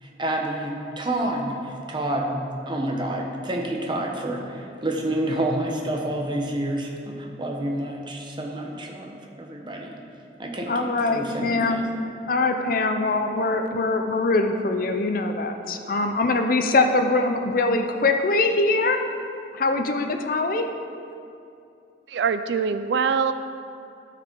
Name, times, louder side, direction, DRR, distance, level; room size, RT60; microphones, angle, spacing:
voice 1, 0.0-10.0 10.4-11.9, right 1 dB, 25° right, 0 dB, 0.9 m, -29 dB
voice 2, 10.7-11.8 12.3-19.0 19.5-20.6, left 3 dB, 50° left, 6 dB, 0.5 m, -23 dB
voice 3, 22.1-23.3, right 6 dB, 65° right, 11 dB, 0.3 m, -23 dB
12.5 x 5.0 x 4.6 m, 2.5 s
head